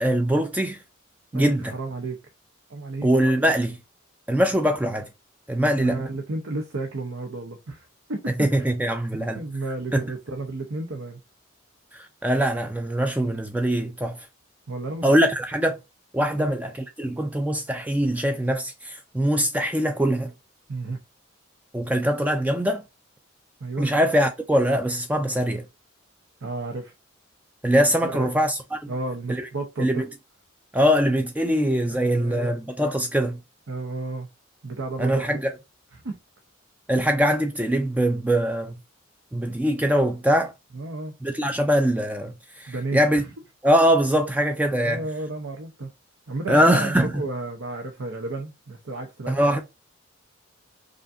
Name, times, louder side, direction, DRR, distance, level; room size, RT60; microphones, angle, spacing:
voice 1, 0.0-0.8 1.3-1.7 3.0-3.8 4.3-5.1 5.5-6.0 8.4-9.4 9.9-10.0 11.9-14.2 15.0-15.8 16.1-20.3 21.7-22.8 23.8-25.6 27.6-28.9 29.4-29.5 29.8-30.1 30.7-33.4 35.0-35.5 36.9-38.8 39.3-40.5 41.2-43.2 43.6-45.0 46.5-47.2 49.3-49.6, equal, 5° right, 0.3 m, -22 dB
voice 2, 1.3-2.2 2.7-3.1 5.8-8.7 9.3-11.2 14.7-15.1 16.4-16.5 20.7-21.0 23.6-23.9 26.4-26.9 28.0-28.3 28.9-30.0 32.0-32.5 33.7-34.3 34.6-35.2 36.0-36.2 40.7-41.1 42.7-43.3 44.8-45.9 46.3-49.6, right 2 dB, 70° right, 0.7 m, -32 dB
5.0 x 2.5 x 2.5 m
head